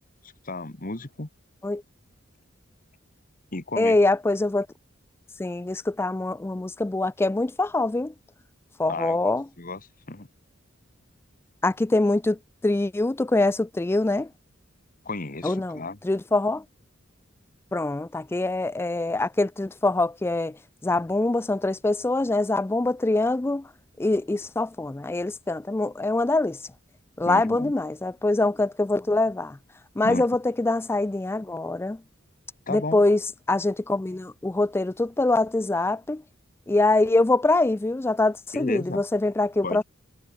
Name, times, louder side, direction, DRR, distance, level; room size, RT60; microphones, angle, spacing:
voice 1, 0.2-1.3 3.5-4.0 8.9-9.8 10.1-10.3 15.1-16.0 27.3-27.7 30.0-30.2 32.7-33.0 38.5-39.0 39.6-39.8, left 2 dB, 45° left, 1.8 m, -33 dB
voice 2, 3.8-4.7 5.4-8.1 8.8-9.4 11.6-14.3 15.4-16.6 17.7-20.6 20.8-23.7 24.0-26.6 27.2-29.6 30.0-32.0 32.7-33.2 33.5-36.2 36.7-39.8, left 2 dB, 10° left, 0.3 m, -24 dB
head